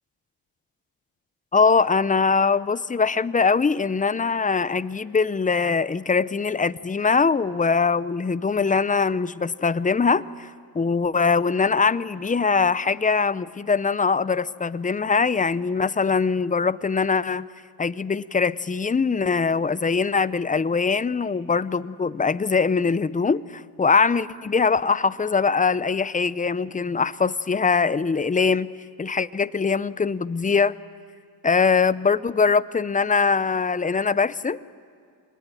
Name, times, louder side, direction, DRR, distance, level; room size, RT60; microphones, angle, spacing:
voice 1, 1.5-10.5 10.7-17.5 17.8-28.7 29.0-30.7 31.4-34.6, left 5 dB, 20° left, 17 dB, 0.6 m, -22 dB
26.0 x 20.5 x 8.9 m, 2.2 s
cardioid pair, 75°, 43 cm